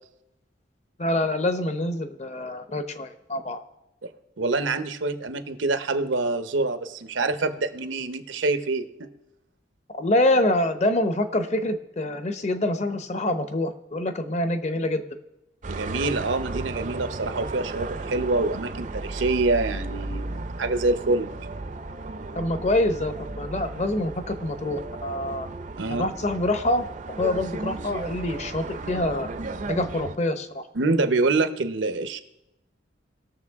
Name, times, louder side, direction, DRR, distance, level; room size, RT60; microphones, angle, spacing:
voice 1, 1.0-3.6 10.0-15.0 22.3-25.5 25.9-26.9 27.2-29.3 29.7-30.6, left 1 dB, 35° left, 9 dB, 0.8 m, -26 dB
voice 2, 4.4-9.1 15.7-21.3 25.8-26.1 30.7-32.2, right 3 dB, 85° right, 10 dB, 0.8 m, -26 dB
sound 1, 15.6-30.2, right 2 dB, 40° right, 0.5 m, -35 dB
19.5 x 6.8 x 3.6 m, 0.88 s
head